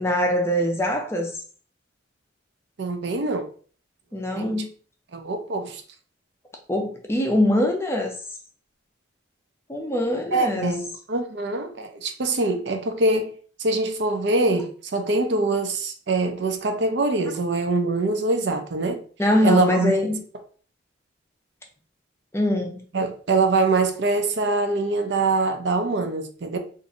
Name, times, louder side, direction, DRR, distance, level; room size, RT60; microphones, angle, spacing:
voice 1, 0.0-1.3 4.1-4.7 6.7-8.1 9.7-10.7 19.2-20.2 22.3-22.8, left 1 dB, 15° left, 0.5 m, -23 dB
voice 2, 2.8-3.5 4.4-4.6 5.1-5.8 10.3-19.0 19.4-19.9 22.9-26.6, right 3 dB, 60° right, 0.5 m, -24 dB
2.6 x 2.5 x 4.0 m
head